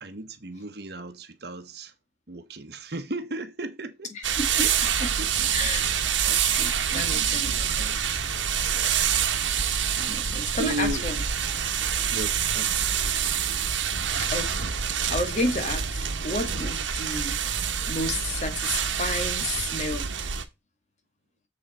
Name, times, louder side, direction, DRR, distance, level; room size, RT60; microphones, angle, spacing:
voice 1, 0.0-1.9 2.3-4.1 4.5-4.8 5.2-5.5 6.9-8.4 8.7-9.0 9.7-10.0 10.6-11.0 12.1-13.0, right 1 dB, 55° right, 1.1 m, -36 dB
voice 2, 4.1-4.5 5.5-5.9 6.2-7.7 10.0-11.2 14.2-17.4 17.9-20.1, left 2 dB, 40° left, 1.8 m, -31 dB
sound 1, 4.2-20.4, right 8 dB, 80° right, 1.1 m, -26 dB
7.1 x 5.9 x 4.1 m
head